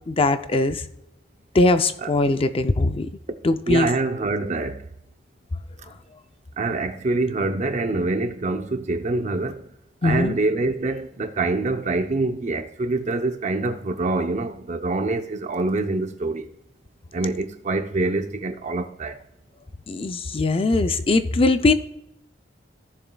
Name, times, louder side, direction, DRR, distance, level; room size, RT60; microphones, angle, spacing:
voice 1, 0.1-0.8 1.5-3.1 3.4-3.9 10.0-10.4 19.9-21.7, left 2 dB, 30° left, 0.5 m, -20 dB
voice 2, 3.7-4.8 6.6-9.7 10.0-16.5 17.1-19.2, right 2 dB, 40° right, 0.6 m, -25 dB
15.0 x 7.1 x 2.3 m
head